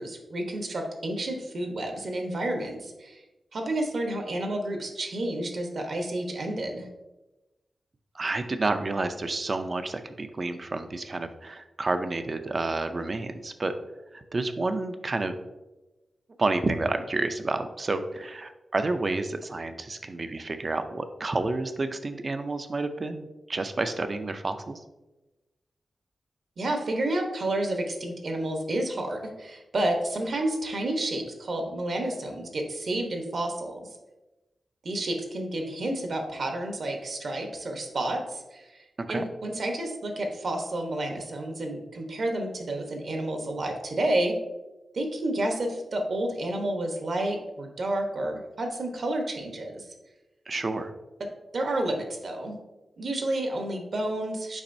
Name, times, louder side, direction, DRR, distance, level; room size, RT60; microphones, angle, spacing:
voice 1, 0.0-3.2 3.5-6.9 26.6-33.9 34.8-44.4 44.9-49.9 51.5-52.6 53.0-54.6, right 1 dB, 55° right, 3 dB, 1.0 m, -30 dB
voice 2, 8.1-13.7 14.1-15.3 16.4-24.8 39.0-39.3 50.5-50.9, right 3 dB, 35° right, 9 dB, 0.4 m, -30 dB
7.1 x 5.2 x 2.6 m, 1.0 s
wide cardioid pair, 165°, 0 cm